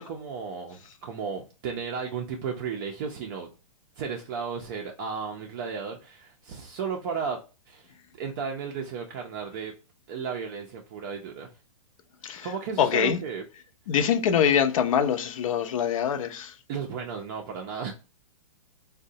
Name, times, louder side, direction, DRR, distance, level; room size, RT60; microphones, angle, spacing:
voice 1, 0.0-3.5 4.0-7.4 7.7-7.9 8.2-9.7 10.1-11.5 12.4-13.4 16.7-17.9, right 6 dB, 35° right, 0.4 m, -34 dB
voice 2, 12.8-13.2 13.9-16.5, left 8 dB, 70° left, 0.5 m, -24 dB
3.8 x 2.1 x 2.6 m
hypercardioid pair, 155°, 18 cm